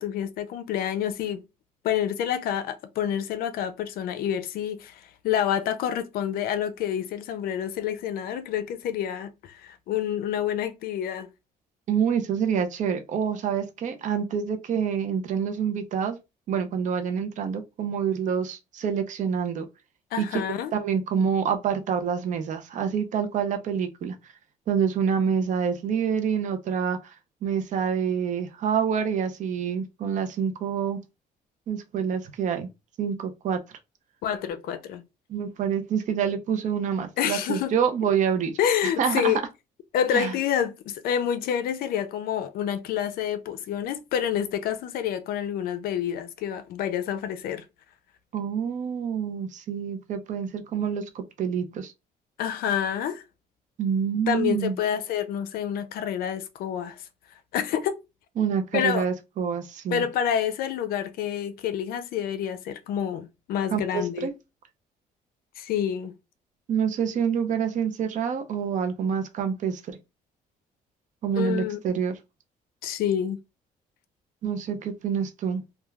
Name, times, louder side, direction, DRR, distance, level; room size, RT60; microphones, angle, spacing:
voice 1, 0.0-1.4 1.8-11.3 20.1-20.7 34.2-35.0 37.2-37.7 38.6-39.4 39.9-47.7 52.4-53.2 54.3-57.0 57.5-58.0 58.7-59.0 59.9-64.3 65.6-66.1 71.4-71.8 72.8-73.4, left 9 dB, 75° left, 0.4 m, -28 dB
voice 2, 11.9-16.2 16.5-19.7 20.2-20.4 20.7-24.2 24.7-27.1 27.4-31.0 31.7-32.7 33.0-33.6 35.3-39.4 40.1-40.3 48.3-51.9 53.8-54.8 58.4-60.0 63.7-64.3 66.7-70.0 71.2-72.2 74.4-75.6, right 7 dB, 55° right, 0.5 m, -27 dB
3.1 x 2.3 x 2.3 m
cardioid pair, 130°, 16 cm